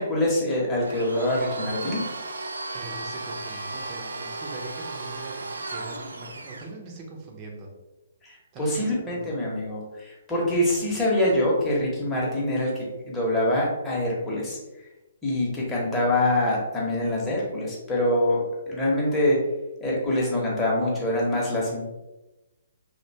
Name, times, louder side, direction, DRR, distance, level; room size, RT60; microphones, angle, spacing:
voice 1, 0.0-2.0 8.2-14.6 15.2-19.4 19.8-21.8, left 1 dB, 10° left, -5 dB, 0.9 m, -25 dB
Domestic sounds home sounds, 0.8-6.7, right 3 dB, 75° right, 0.3 m, -35 dB
voice 2, 2.7-7.7 8.5-9.3, right 2 dB, 30° right, 0 dB, 0.6 m, -41 dB
2.7 x 2.2 x 2.7 m, 1.0 s
figure-of-eight pair, 130°, 0 cm